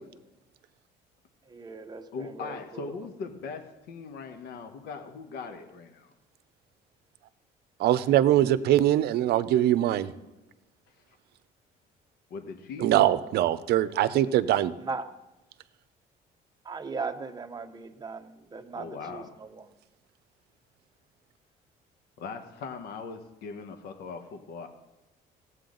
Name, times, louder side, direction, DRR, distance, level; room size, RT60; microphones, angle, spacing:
voice 1, 1.5-2.9 8.0-8.2 14.8-15.1 16.6-19.7, right 4 dB, 25° right, 7 dB, 0.9 m, -38 dB
voice 2, 2.1-6.1 10.9-11.0 12.3-12.9 18.7-19.3 22.2-24.7, left 4 dB, 75° left, 7 dB, 1.2 m, -40 dB
voice 3, 7.8-10.1 12.8-14.7, right 13 dB, 75° right, 14 dB, 0.6 m, -22 dB
17.5 x 8.0 x 3.9 m, 0.99 s
cardioid pair, 110°, 17 cm